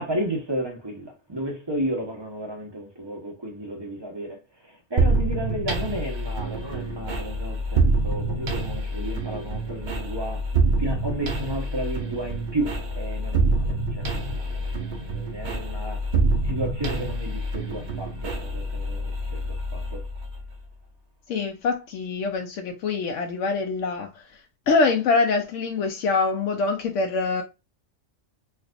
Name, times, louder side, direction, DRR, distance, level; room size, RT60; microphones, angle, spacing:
voice 1, 0.0-10.5 10.8-16.1 16.4-20.0, right 1 dB, 25° right, 0.9 m, -33 dB
sound 1, 5.0-20.6, right 2 dB, 45° right, 0.8 m, -26 dB
voice 2, 21.3-27.4, left 4 dB, 80° left, 1.0 m, -25 dB
4.4 x 2.4 x 2.4 m
omnidirectional pair, 1.3 m